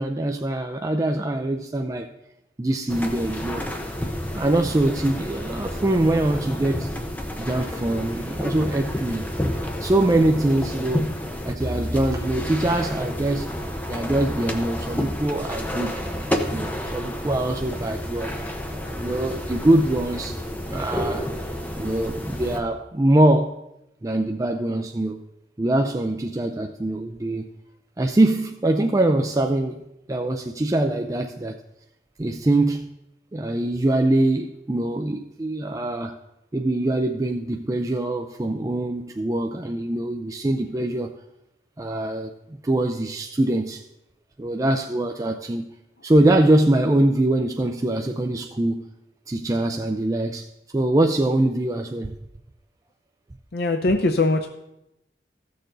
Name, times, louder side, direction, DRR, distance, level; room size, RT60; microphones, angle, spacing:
voice 1, 0.0-2.1 2.6-3.7 4.3-6.9 7.4-9.3 9.8-11.1 11.4-13.5 13.9-16.0 16.5-18.3 19.0-20.4 20.7-21.3 21.8-23.6 24.0-25.2 25.6-27.5 28.0-29.8 30.1-31.6 32.2-32.9 33.3-36.2 36.5-41.2 41.8-42.3 42.6-43.8 44.4-45.7 46.0-48.9 49.3-50.5 50.7-52.2, right 1 dB, 20° right, 0.4 m, -23 dB
sound 1, 2.9-22.6, equal, 10° left, 0.8 m, -30 dB
voice 2, 53.5-54.5, left 2 dB, 60° left, 0.6 m, -21 dB
15.0 x 6.7 x 3.9 m
head